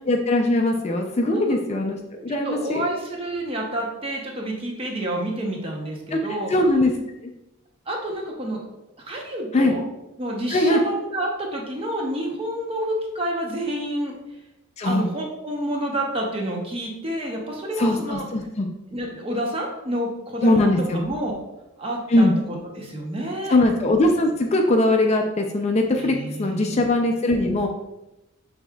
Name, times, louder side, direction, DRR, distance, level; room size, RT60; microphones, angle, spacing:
voice 1, 0.1-2.0 2.2-2.8 6.1-6.9 9.5-9.8 10.5-10.8 14.8-15.1 17.8-18.7 20.4-21.0 22.1-22.3 23.5-27.7, left 1 dB, 30° left, 3 dB, 0.4 m, -21 dB
voice 2, 2.3-6.5 7.9-8.6 9.1-9.8 10.2-14.1 14.8-18.2 18.9-21.4 21.8-23.6 26.0-26.8, right 1 dB, 25° right, 0 dB, 0.8 m, -29 dB
6.1 x 3.5 x 2.3 m, 0.95 s
head